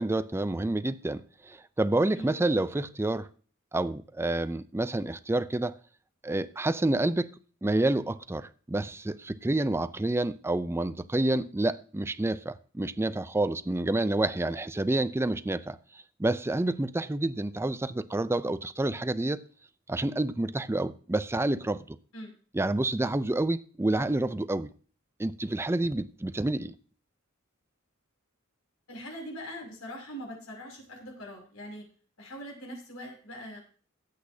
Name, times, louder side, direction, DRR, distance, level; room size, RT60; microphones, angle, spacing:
voice 1, 0.0-3.3 3.7-5.7 6.2-7.3 7.6-15.8 16.2-19.4 19.9-22.0 22.5-24.7 25.2-26.7, right 2 dB, 10° right, 0.4 m, -28 dB
voice 2, 28.9-31.8 32.2-33.6, equal, 90° left, 6.2 m, -42 dB
18.0 x 8.4 x 2.8 m
head